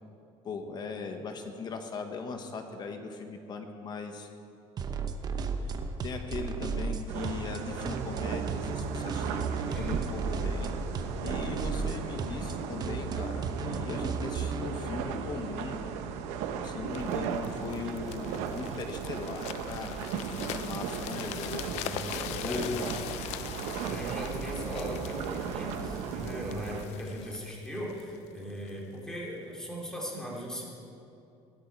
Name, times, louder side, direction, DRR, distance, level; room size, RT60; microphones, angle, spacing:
voice 1, 0.4-4.3 6.0-10.7 11.2-15.8 16.6-21.7 22.4-22.9, left 4 dB, 40° left, 6 dB, 1.2 m, -39 dB
sound 1, 4.8-14.7, right 5 dB, 35° right, 0.9 m, -34 dB
sound 2, 7.1-26.8, right 7 dB, 80° right, 1.0 m, -36 dB
voice 2, 9.7-10.2 21.7-22.7 23.8-30.6, equal, 5° left, -4 dB, 2.9 m, -39 dB
sound 3, 16.9-28.8 29.4-29.6, left 12 dB, 70° left, 0.6 m, -42 dB
15.5 x 12.5 x 4.6 m, 2.8 s
cardioid pair, 130°, 12 cm